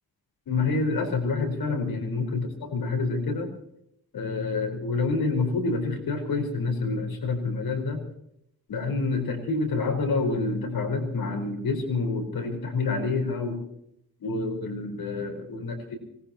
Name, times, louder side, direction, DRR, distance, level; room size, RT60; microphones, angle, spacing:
voice 1, 0.5-3.5 4.1-8.1 8.7-13.6 14.2-16.0, left 3 dB, 85° left, 4 dB, 4.6 m, -27 dB
24.5 x 19.5 x 2.9 m, 0.74 s
cardioid pair, 80°, 35 cm